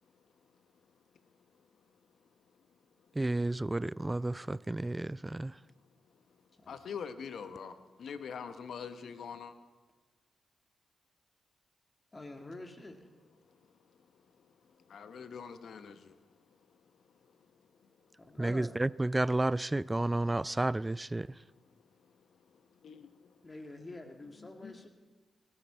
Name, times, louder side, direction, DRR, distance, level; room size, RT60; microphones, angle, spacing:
voice 1, 3.2-5.5 18.4-21.3, right 2 dB, 20° right, 0.3 m, -31 dB
voice 2, 6.7-7.7 8.0-9.5 14.9-15.9 22.8-23.1 24.6-24.8, left 6 dB, 70° left, 0.9 m, -43 dB
voice 3, 12.1-13.1 18.2-18.7 23.4-24.9, left 2 dB, 35° left, 2.2 m, -46 dB
19.0 x 13.5 x 4.5 m
supercardioid pair, 40°, 0 cm